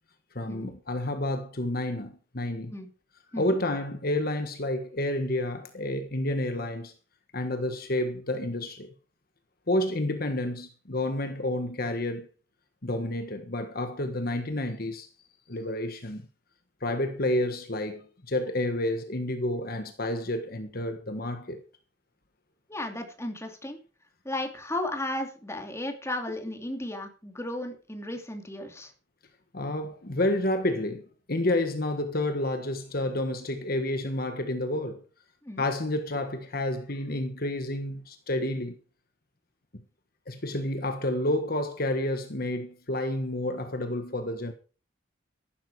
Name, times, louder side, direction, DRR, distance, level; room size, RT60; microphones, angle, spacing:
voice 1, 0.3-2.7 3.4-6.9 7.3-8.9 9.7-12.3 12.8-15.1 15.5-16.3 16.8-21.6 29.5-35.0 35.6-38.8 40.3-44.5, left 1 dB, 50° left, 1.5 m, -30 dB
voice 2, 22.7-23.8 24.2-28.9 35.4-35.6, left 1 dB, 15° left, 2.7 m, -34 dB
14.0 x 12.0 x 4.8 m
head